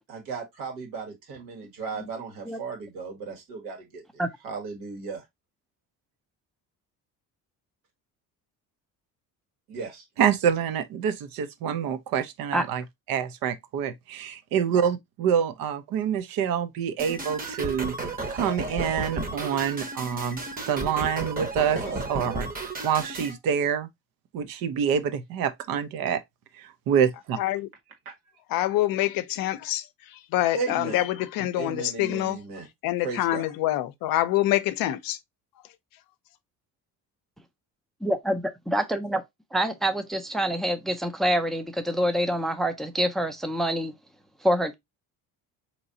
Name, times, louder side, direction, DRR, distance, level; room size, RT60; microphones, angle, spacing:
voice 1, 0.1-4.0 4.4-5.2 9.7-10.0 21.7-22.0 28.1-28.2 30.5-31.0 31.6-32.7 33.0-33.5, right 5 dB, 90° right, 1.9 m, -35 dB
voice 2, 10.2-18.0 18.3-20.4 20.7-21.8 22.1-22.5 22.8-23.9 24.3-26.2 26.6-27.4, right 8 dB, 70° right, 0.7 m, -26 dB
sound 1, 17.0-23.4, right 2 dB, 25° right, 0.9 m, -33 dB
voice 3, 27.4-27.7 28.5-32.4 32.8-35.2, left 14 dB, 70° left, 0.6 m, -26 dB
voice 4, 38.0-39.2 39.5-43.9 44.4-44.7, equal, ahead, 0.4 m, -26 dB
4.0 x 3.1 x 2.7 m
cardioid pair, 95°, 36 cm